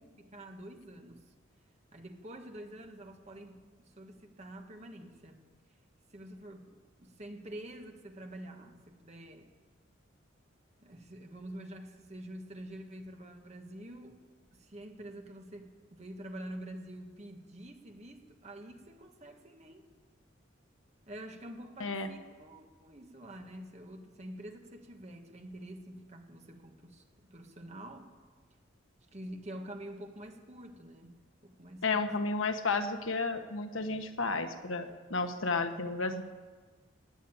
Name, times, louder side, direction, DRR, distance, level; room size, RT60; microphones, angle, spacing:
voice 1, 0.2-1.2 1.9-5.4 6.1-9.5 10.8-14.2 14.5-19.8 21.1-28.1 29.1-31.1 31.4-32.1, right 1 dB, 35° right, 4 dB, 1.5 m, -47 dB
voice 2, 21.8-22.1 31.8-36.2, left 3 dB, 85° left, 7 dB, 1.2 m, -32 dB
16.5 x 9.9 x 8.7 m, 1.4 s
head